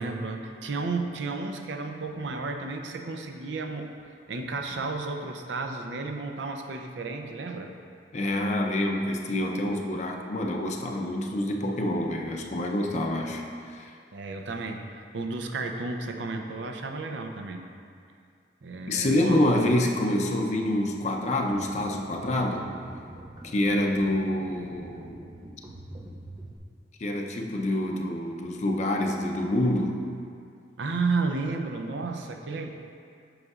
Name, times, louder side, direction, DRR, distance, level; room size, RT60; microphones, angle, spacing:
voice 1, 0.0-3.9 4.3-7.7 14.1-17.7 18.6-19.4 30.8-32.7, right 3 dB, 80° right, 4 dB, 0.5 m, -32 dB
voice 2, 8.1-13.9 18.9-22.7 23.4-25.2 27.0-30.0, left 1 dB, 40° left, 1 dB, 0.5 m, -27 dB
sound 1, 21.5-26.6, right 1 dB, 25° right, 0.4 m, -45 dB
7.9 x 6.3 x 2.4 m, 2.4 s
head